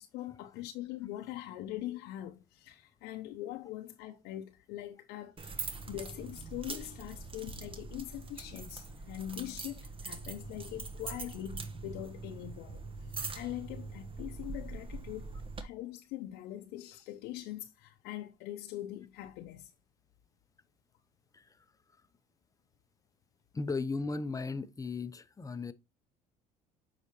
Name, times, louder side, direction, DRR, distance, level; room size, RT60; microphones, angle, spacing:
voice 1, 0.0-15.3 15.6-19.7, left 14 dB, 75° left, 0.8 m, -42 dB
Picking up Keys, 5.4-15.6, right 3 dB, 30° right, 1.3 m, -43 dB
voice 2, 21.3-21.6 23.5-25.7, left 4 dB, 20° left, 0.7 m, -36 dB
8.1 x 4.9 x 3.1 m
supercardioid pair, 80°, 17 cm